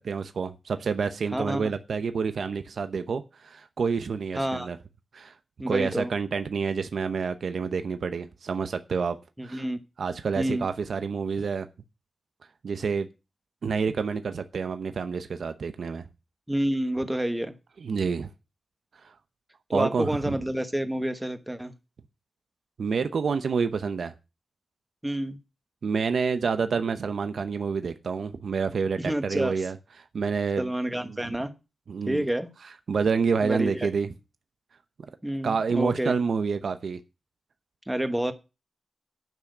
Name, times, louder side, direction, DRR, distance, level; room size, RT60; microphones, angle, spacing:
voice 1, 0.0-4.8 5.1-5.3 5.7-9.2 9.4-9.6 10.0-11.7 12.6-13.1 13.6-16.1 17.8-18.3 19.0-19.1 19.7-20.4 22.8-24.1 25.8-29.8 30.1-30.7 31.0-31.3 31.9-32.3 32.9-34.1 35.4-37.0, right 5 dB, 65° right, 0.9 m, -28 dB
voice 2, 1.3-1.6 4.3-4.7 5.6-6.1 9.4-9.8 10.4-10.7 16.5-17.5 19.7-21.7 25.0-25.4 29.0-29.5 30.6-31.5 32.1-32.5 33.4-33.9 35.2-36.1 37.9-38.3, right 1 dB, 5° right, 1.2 m, -28 dB
10.5 x 6.0 x 7.9 m
wide cardioid pair, 175°, 0 cm